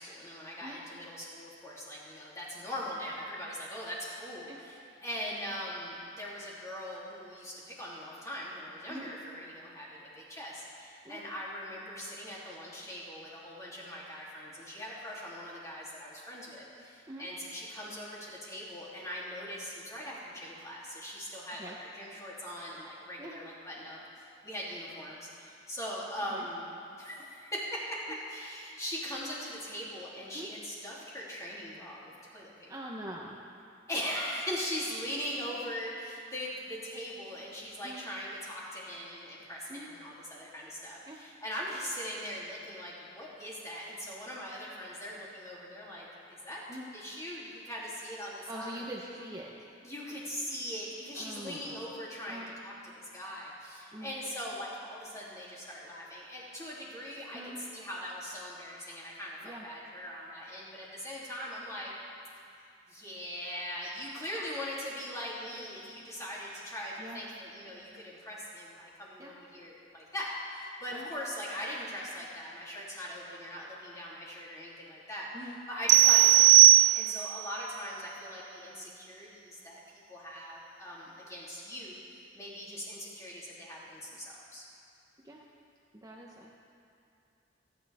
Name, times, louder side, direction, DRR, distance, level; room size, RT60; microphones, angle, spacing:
voice 1, 0.0-26.7 27.0-32.7 33.9-46.6 46.9-48.8 49.8-57.4 57.7-61.9 62.9-75.3 75.7-79.8 80.1-82.0 82.3-84.6, equal, 15° left, -7 dB, 3.2 m, -41 dB
voice 2, 32.7-33.4 37.8-38.0 39.7-39.9 41.1-41.2 46.7-46.9 48.5-49.5 51.1-51.8 52.3-52.5 53.9-54.1 57.3-57.6 59.4-59.7 67.0-67.2 69.2-69.3 70.9-71.1 75.3-75.6 85.2-85.4 85.9-86.5, right 1 dB, 20° right, -3 dB, 1.0 m, -43 dB
sound 1, 75.9-77.4, right 15 dB, 75° right, 0.3 m, -18 dB
30.0 x 10.0 x 3.6 m, 2.6 s
head